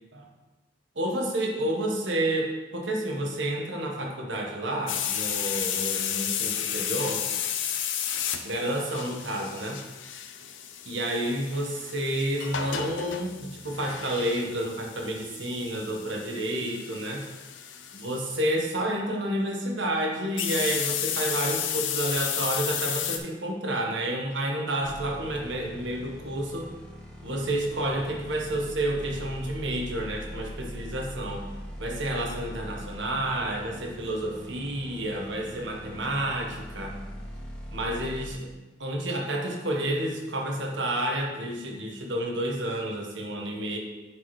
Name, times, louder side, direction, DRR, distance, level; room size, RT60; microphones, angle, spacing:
voice 1, 0.9-7.2 8.4-9.8 10.9-17.2 17.9-26.7 27.2-31.5 31.8-37.0 37.7-38.5 38.8-43.8, right 1 dB, 65° right, 0 dB, 1.3 m, -30 dB
sound 1, 4.9-18.4 20.4-23.2, left 9 dB, 70° left, 0.6 m, -32 dB
sound 2, 24.8-38.3, equal, 5° left, 1.3 m, -41 dB
10.0 x 4.7 x 3.2 m, 1.2 s
head